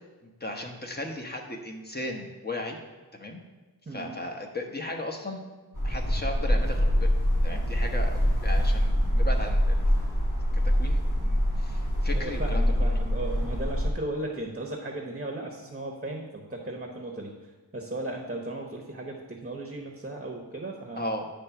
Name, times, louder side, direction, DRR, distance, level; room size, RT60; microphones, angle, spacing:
voice 1, 0.4-2.8 3.1-3.4 3.9-5.4 5.8-7.1 7.4-9.9 10.5-12.7 21.0-21.3, left 1 dB, 25° left, 2 dB, 1.0 m, -36 dB
voice 2, 3.9-4.2 12.1-17.3 17.7-21.2, right 2 dB, 25° right, 1 dB, 0.9 m, -36 dB
sound 1, 5.7-13.9, equal, 50° left, 2.1 m, -25 dB
9.6 x 3.3 x 5.9 m, 1.2 s
wide cardioid pair, 80°, 40 cm